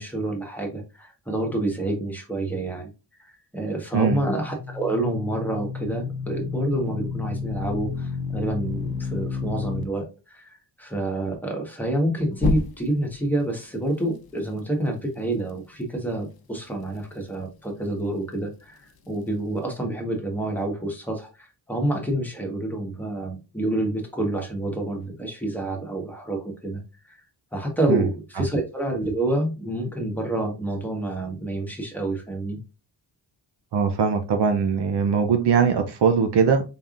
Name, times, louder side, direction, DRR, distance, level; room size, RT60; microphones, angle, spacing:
voice 1, 0.0-2.9 3.2-27.2 27.5-32.6, right 1 dB, 5° left, 1.4 m, -28 dB
sound 1, 4.0-9.8 12.4-13.1, left 4 dB, 55° left, 0.8 m, -30 dB
voice 2, 33.7-36.6, right 6 dB, 65° right, 0.7 m, -21 dB
4.0 x 3.5 x 2.5 m
wide cardioid pair, 90°, 43 cm